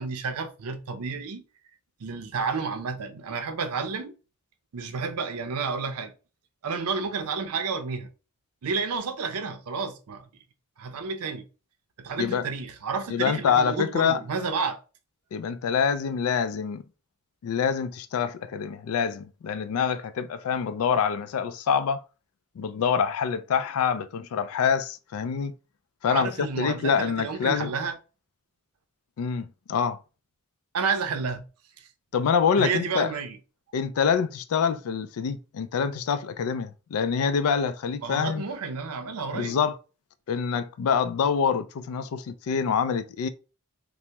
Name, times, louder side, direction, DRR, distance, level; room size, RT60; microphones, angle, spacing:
voice 1, 0.0-1.4 2.0-4.1 4.7-6.1 6.6-8.1 8.6-10.3 10.8-11.5 12.0-14.8 26.1-28.0 30.7-31.4 31.8-31.9 32.6-33.4 38.0-39.6, right 5 dB, 85° right, 0.5 m, -30 dB
voice 2, 13.1-14.2 15.3-16.8 17.4-22.0 22.6-25.5 26.0-27.7 29.2-30.0 32.1-33.1 33.7-38.4 39.3-39.7 40.3-43.3, left 6 dB, 75° left, 0.3 m, -26 dB
3.3 x 2.0 x 2.8 m
head